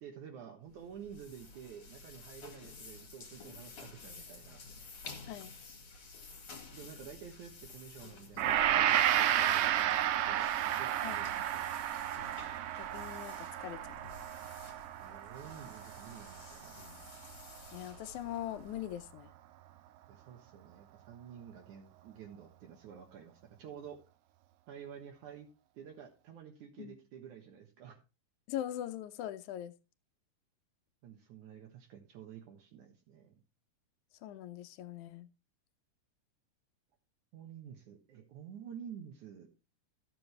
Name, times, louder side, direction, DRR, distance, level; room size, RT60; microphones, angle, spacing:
voice 1, 0.0-4.6 6.7-11.7 15.0-16.8 20.1-24.0 24.7-25.5 25.8-28.0 31.0-33.3 37.3-39.5, right 8 dB, 70° right, 2.8 m, -50 dB
sound 1, 0.7-19.1, left 4 dB, 50° left, 2.6 m, -52 dB
Gong, 8.4-16.8 17.1-17.3, right 11 dB, 85° right, 1.3 m, -32 dB
voice 2, 11.0-11.5 12.7-14.0 17.7-19.3 26.8-26.9 28.5-29.7 34.2-35.3, left 12 dB, 75° left, 2.0 m, -41 dB
13.5 x 7.8 x 3.3 m
omnidirectional pair, 3.6 m